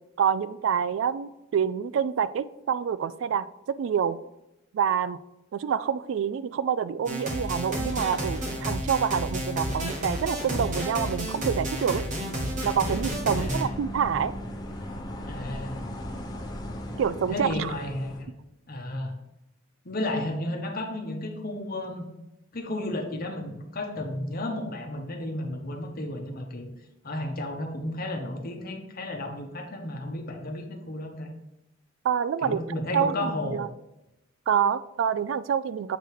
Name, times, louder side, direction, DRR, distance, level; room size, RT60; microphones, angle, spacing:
voice 1, 0.2-3.5 3.8-4.2 4.7-5.2 5.5-12.0 12.6-14.3 17.0-17.7 32.0-32.6 32.9-33.7 34.5-36.0, right 7 dB, 70° right, 0.3 m, -27 dB
sound 1, 7.1-13.6, equal, 40° right, 1.3 m, -31 dB
sound 2, 12.6-18.2, equal, 20° left, 0.9 m, -37 dB
voice 2, 13.3-13.8 15.3-15.8 17.3-18.3 18.7-19.2 19.8-22.1 22.5-26.7 27.0-31.3 32.4-33.7, left 1 dB, 50° left, 1.1 m, -33 dB
7.8 x 3.4 x 4.6 m
head